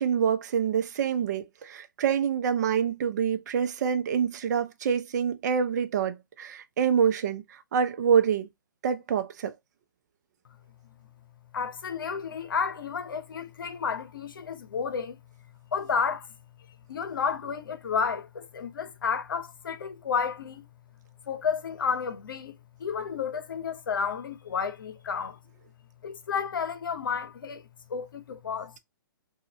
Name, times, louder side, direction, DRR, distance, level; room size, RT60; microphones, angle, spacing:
voice 1, 0.0-7.4 7.7-8.5 8.8-9.5, right 7 dB, 55° right, 0.6 m, -26 dB
voice 2, 11.5-15.2 15.7-16.3 16.9-20.7 21.3-25.4 26.0-27.6 27.9-28.8, left 6 dB, 70° left, 0.8 m, -31 dB
4.0 x 2.4 x 2.7 m
hypercardioid pair, 135°, 11 cm